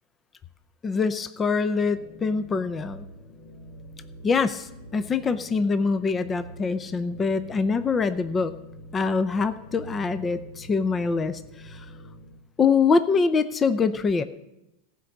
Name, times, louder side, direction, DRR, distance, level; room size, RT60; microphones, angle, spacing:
voice 1, 0.8-3.0 4.2-8.5 8.9-11.9 12.6-14.2, left 5 dB, 25° left, 11 dB, 0.6 m, -24 dB
sound 1, 1.7-12.4, right 1 dB, 55° left, 1.8 m, -45 dB
15.5 x 5.4 x 7.4 m, 0.93 s
hypercardioid pair, 110°, 0 cm